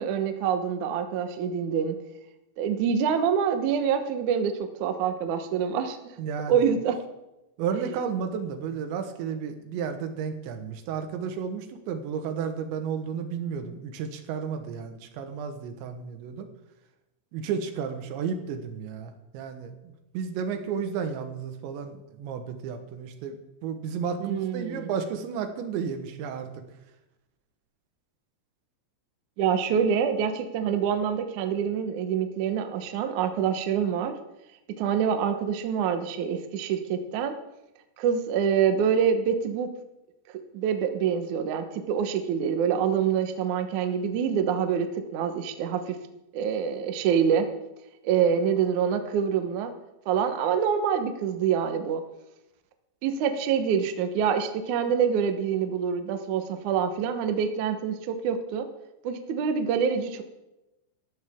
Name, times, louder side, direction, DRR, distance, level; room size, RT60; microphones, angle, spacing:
voice 1, 0.0-2.0 2.6-6.2 6.5-7.0 7.7-7.8 24.2-24.9 29.4-34.2 34.8-37.4 38.0-39.7 40.5-46.0 46.3-47.5 48.0-49.7 50.1-52.0 53.0-58.7 59.0-60.2, right 7 dB, 75° right, 7 dB, 1.8 m, -26 dB
voice 2, 6.2-6.7 7.6-16.5 17.3-23.4 23.6-26.5, right 6 dB, 90° right, 7 dB, 3.6 m, -32 dB
19.0 x 14.5 x 3.7 m, 0.96 s
omnidirectional pair, 5.1 m